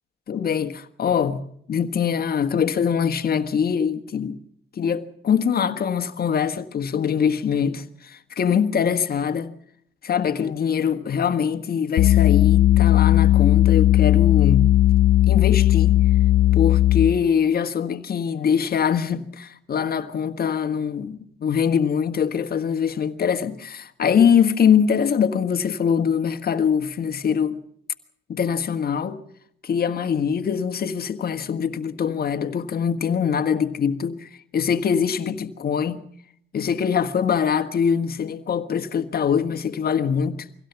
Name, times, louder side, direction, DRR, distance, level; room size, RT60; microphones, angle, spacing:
voice 1, 0.3-1.4 1.7-4.4 4.8-9.5 10.0-14.7 15.3-16.0 16.5-27.6 28.3-29.2 29.6-36.0 36.5-40.5, left 7 dB, 50° left, 1.6 m, -23 dB
sound 1, 12.0-17.3, left 13 dB, 75° left, 0.8 m, -16 dB
24.0 x 16.5 x 7.0 m
cardioid pair, 90°, 20 cm